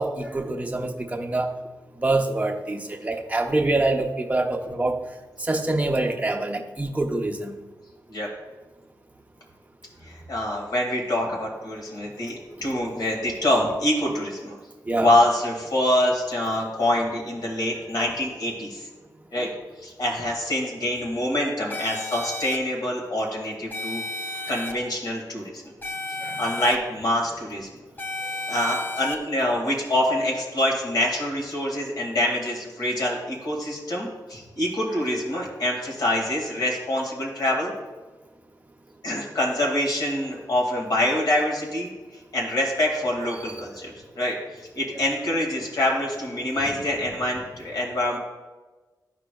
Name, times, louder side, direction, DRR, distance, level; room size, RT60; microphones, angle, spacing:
voice 1, 0.0-1.5 2.0-5.0 5.4-7.5 14.9-15.1 19.4-19.5 26.2-26.3, right 2 dB, 20° right, 3 dB, 0.8 m, -25 dB
voice 2, 10.0-14.6 14.9-18.9 19.3-19.5 19.8-24.0 24.5-25.6 26.1-27.7 28.5-37.7 39.0-48.2, left 1 dB, 60° left, -1 dB, 2.0 m, -25 dB
sound 1, 21.7-22.6 23.7-24.7 25.8-26.8 28.0-29.2, left 2 dB, 25° left, 0.7 m, -32 dB
12.5 x 4.9 x 2.3 m, 1.2 s
cardioid pair, 75°, 7 cm